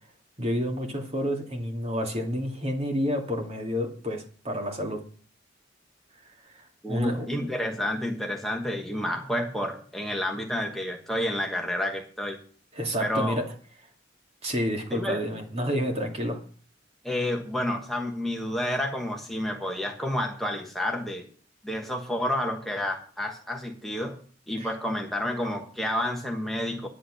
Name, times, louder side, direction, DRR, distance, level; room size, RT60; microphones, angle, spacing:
voice 1, 0.4-5.0 6.5-7.3 12.7-13.4 14.4-16.4 24.6-24.7, equal, 35° right, 2 dB, 2.5 m, -29 dB
voice 2, 6.8-12.4 13.0-13.4 14.9-15.2 17.0-21.2 21.6-24.2 24.5-26.9, left 1 dB, ahead, 1 dB, 1.2 m, -30 dB
10.5 x 10.0 x 6.5 m, 0.44 s
head